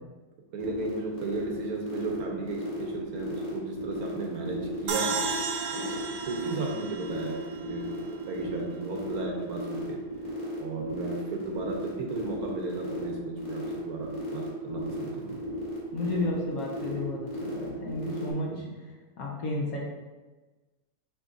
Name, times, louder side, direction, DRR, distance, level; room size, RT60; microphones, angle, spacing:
voice 1, 0.5-5.2 5.7-10.0 10.6-15.4 18.5-18.6, right 3 dB, 70° right, 1 dB, 1.1 m, -35 dB
Volume oscillation, 0.6-18.3, right 1 dB, 20° left, 1.2 m, -36 dB
sound 1, 4.9-8.2, right 5 dB, 85° right, 1.2 m, -34 dB
voice 2, 15.9-18.5 19.2-19.8, left 2 dB, 65° left, -2 dB, 1.2 m, -32 dB
6.1 x 3.3 x 2.5 m, 1.2 s
omnidirectional pair, 1.8 m